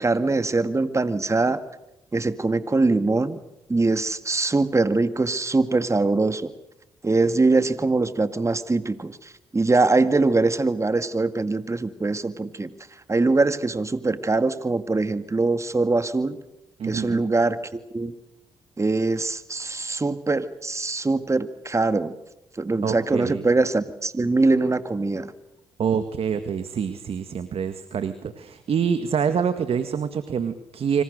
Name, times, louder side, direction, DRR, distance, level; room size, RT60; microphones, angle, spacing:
voice 1, 0.0-1.6 2.1-3.4 3.7-6.5 7.0-16.4 16.8-18.1 18.8-22.1 22.5-25.3, right 3 dB, 25° right, 11 dB, 1.9 m, -23 dB
voice 2, 16.8-17.2 22.8-23.4 25.8-31.0, right 7 dB, 60° right, 10 dB, 1.9 m, -26 dB
28.0 x 25.5 x 6.6 m, 0.87 s
supercardioid pair, 50°, 11 cm